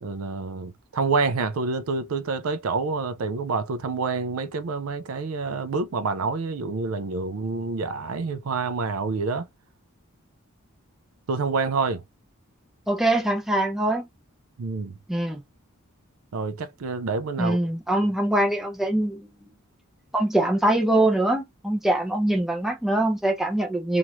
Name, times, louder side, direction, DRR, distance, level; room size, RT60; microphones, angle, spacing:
voice 1, 0.0-9.5 11.3-12.0 14.6-14.9 16.3-17.6, right 4 dB, 65° right, 0.4 m, -27 dB
voice 2, 12.9-14.1 15.1-15.4 17.4-19.3 20.1-24.0, right 1 dB, ahead, 0.6 m, -23 dB
3.0 x 2.5 x 2.9 m
head